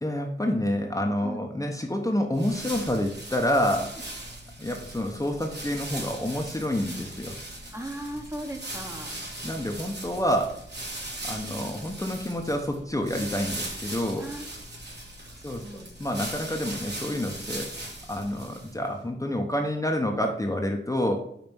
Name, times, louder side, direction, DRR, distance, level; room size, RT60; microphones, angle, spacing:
voice 1, 0.0-3.9 4.6-7.4 9.4-10.6 11.0-14.3 15.4-15.6 16.0-17.8 18.1-21.2, left 1 dB, 15° left, 2 dB, 0.8 m, -28 dB
sound 1, 2.3-18.9, right 1 dB, 60° right, 2.3 m, -39 dB
voice 2, 7.7-9.1 14.2-14.5 15.3-15.9, right 1 dB, 15° right, 3 dB, 1.1 m, -37 dB
5.3 x 4.2 x 5.9 m, 0.72 s
wide cardioid pair, 85°, 19 cm